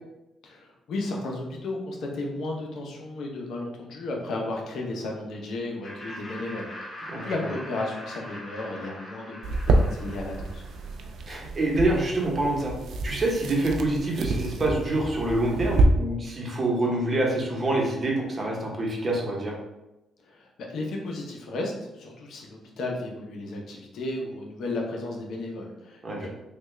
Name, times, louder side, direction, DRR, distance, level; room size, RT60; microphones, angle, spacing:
voice 1, 0.4-9.4 9.7-10.6 20.2-26.3, left 2 dB, 70° left, 0 dB, 0.7 m, -34 dB
Laughter, 5.8-11.1, left 1 dB, 40° left, 0.8 m, -42 dB
voice 2, 7.1-7.5 11.3-12.7 13.0-19.5 26.0-26.3, right 2 dB, 35° right, -2 dB, 0.9 m, -26 dB
sound 1, 9.4-15.8, right 2 dB, 70° right, 0.4 m, -28 dB
3.3 x 2.4 x 3.1 m, 0.96 s
cardioid pair, 90°, 0 cm